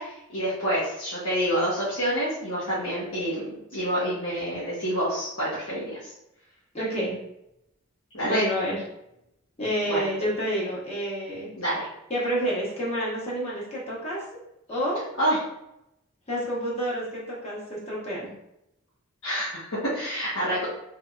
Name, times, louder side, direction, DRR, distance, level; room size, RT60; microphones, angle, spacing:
voice 1, 0.0-6.1 8.1-8.4 9.9-10.1 11.6-11.9 15.2-15.4 19.2-20.6, equal, 75° left, -10 dB, 1.1 m, -27 dB
voice 2, 6.7-7.1 8.2-8.8 9.6-11.5 12.1-14.2 14.7-15.0 16.3-18.3, equal, 30° left, -6 dB, 0.9 m, -29 dB
3.5 x 3.3 x 2.3 m, 0.84 s
head